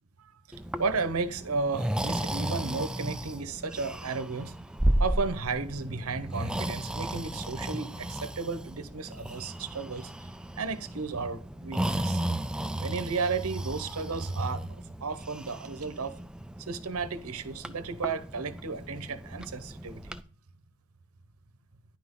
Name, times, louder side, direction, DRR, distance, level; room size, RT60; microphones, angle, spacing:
Breathing, 0.5-20.2, right 1 dB, 5° right, 0.3 m, -34 dB
voice 1, 0.8-4.5 5.0-10.1 10.6-12.2 12.8-14.6 15.0-16.1 16.7-20.0, right 4 dB, 85° right, 0.9 m, -33 dB
10.5 x 5.9 x 3.7 m
head